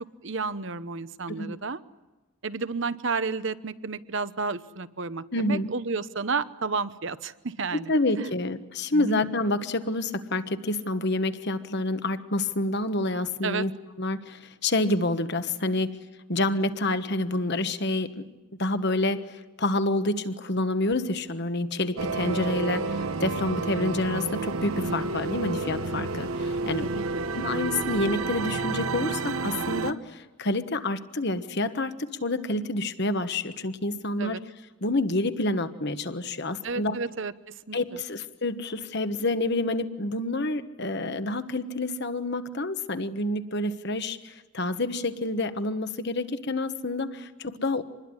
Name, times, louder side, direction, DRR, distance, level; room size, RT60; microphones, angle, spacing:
voice 1, 0.2-1.8 2.4-8.3 8.9-9.2 13.4-13.6 26.8-27.2 34.2-34.4 36.6-37.3 37.7-38.0, right 4 dB, 55° right, 13 dB, 0.9 m, -31 dB
voice 2, 5.3-5.7 7.9-13.7 14.0-15.9 16.3-18.2 18.6-26.9 27.3-34.4 34.8-37.0 37.7-47.8, left 2 dB, 50° left, 10 dB, 1.3 m, -28 dB
sound 1, 22.0-29.9, right 3 dB, 75° right, 1.1 m, -30 dB
26.5 x 21.0 x 9.8 m, 1.1 s
head